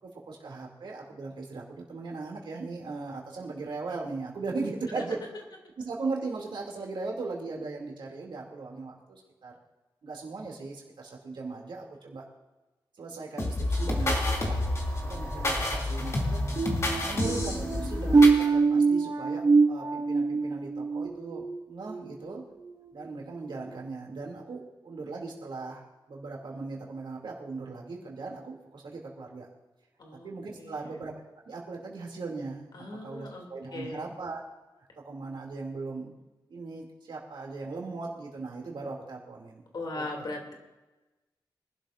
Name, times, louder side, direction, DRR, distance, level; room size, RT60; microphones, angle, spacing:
voice 1, 0.0-5.2 5.8-9.5 10.0-12.2 13.0-14.1 14.4-14.6 15.0-16.4 17.0-22.4 22.9-29.5 30.2-31.1 31.5-32.7 33.0-34.4 35.0-36.1 36.5-39.6 39.9-40.2, right 3 dB, 75° right, -1 dB, 2.5 m, -38 dB
sound 1, 13.4-18.5, left 1 dB, 35° left, 2.6 m, -29 dB
sound 2, 16.6-22.2 22.6-22.9 23.4-23.6, right 4 dB, 50° right, 1.7 m, -25 dB
voice 2, 30.0-30.3 30.6-31.0 32.7-33.4 33.7-34.1 39.7-40.5, left 2 dB, 60° left, 1 dB, 2.6 m, -38 dB
24.0 x 12.0 x 2.5 m, 1.1 s
wide cardioid pair, 145°, 8 cm